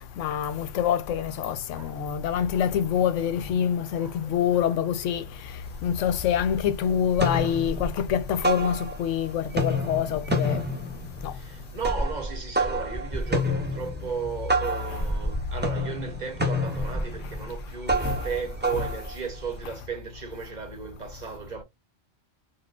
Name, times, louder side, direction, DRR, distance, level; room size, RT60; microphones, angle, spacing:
voice 1, 0.2-5.2 5.8-10.6 11.2-11.3 18.0-18.2, left 9 dB, 85° left, 0.9 m, -26 dB
voice 2, 4.0-4.8 5.2-5.4 11.3-21.6, right 6 dB, 45° right, 0.7 m, -35 dB
sound 1, 5.6-5.7 6.1-6.7 7.0-9.2 9.5-19.6, equal, 15° right, 0.4 m, -29 dB
4.2 x 2.1 x 2.3 m
omnidirectional pair, 1.2 m